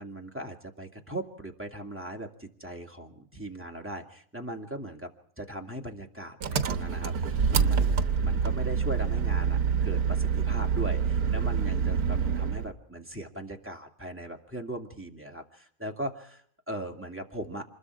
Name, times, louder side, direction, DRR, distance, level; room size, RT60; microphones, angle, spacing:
voice 1, 0.0-5.1 5.4-17.6, right 1 dB, 10° right, 2 dB, 2.3 m, -39 dB
Engine, 6.4-12.7, right 6 dB, 70° right, 1.6 m, -26 dB
27.0 x 21.5 x 4.7 m, 0.62 s
omnidirectional pair, 1.7 m